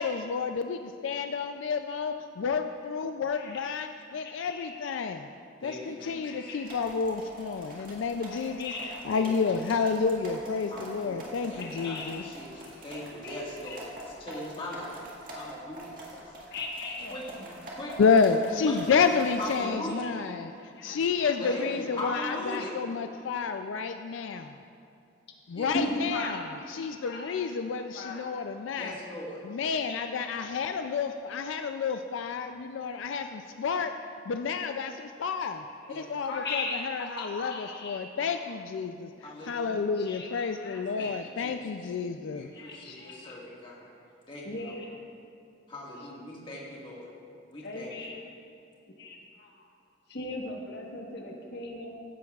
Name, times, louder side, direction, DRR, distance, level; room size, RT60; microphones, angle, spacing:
voice 1, 0.0-5.3 5.6-8.7 9.0-12.2 18.0-20.5 20.8-24.6 25.5-26.4 26.7-28.9 29.4-33.9 34.3-42.5, left 5 dB, 85° left, 7 dB, 0.4 m, -30 dB
voice 2, 3.3-3.7 4.1-4.8 6.0-6.8 8.3-9.1 11.5-12.2 12.6-13.4 13.6-13.8 16.5-17.4 19.9-20.0 21.2-21.5 22.6-22.7 25.7-28.3 29.7-30.1 35.4-35.5 36.2-38.4 39.9-41.2 42.5-43.4 44.4-45.0 46.0-46.1 47.6-48.3 49.0-49.7 50.1-52.0, left 2 dB, 60° left, 0 dB, 1.3 m, -39 dB
voice 3, 5.6-6.5 9.1-9.3 10.7-14.9 15.3-16.2 17.1-18.1 18.6-19.0 19.4-20.1 21.4-22.7 25.5-25.8 28.8-29.4 35.9-36.1 39.2-39.8 41.0-41.1 41.4-41.5 42.3-43.9 44.3-44.7 45.7-47.1 47.5-47.9, left 1 dB, 30° left, -4 dB, 1.8 m, -40 dB
sound 1, 6.7-19.7, right 1 dB, 50° right, 1.8 m, -44 dB
15.5 x 10.5 x 2.4 m, 2.5 s
head